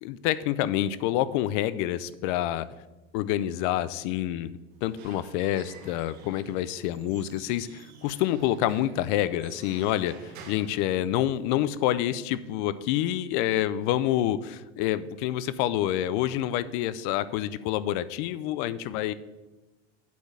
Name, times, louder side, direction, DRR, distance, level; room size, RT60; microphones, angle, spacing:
voice 1, 0.0-2.7 3.1-4.5 4.8-19.1, left 12 dB, 50° left, 16 dB, 0.5 m, -27 dB
Squeak / Wood, 4.7-11.6, right 5 dB, 85° right, 1.6 m, -51 dB
8.2 x 4.4 x 7.1 m, 1.1 s
supercardioid pair, 155°, 32 cm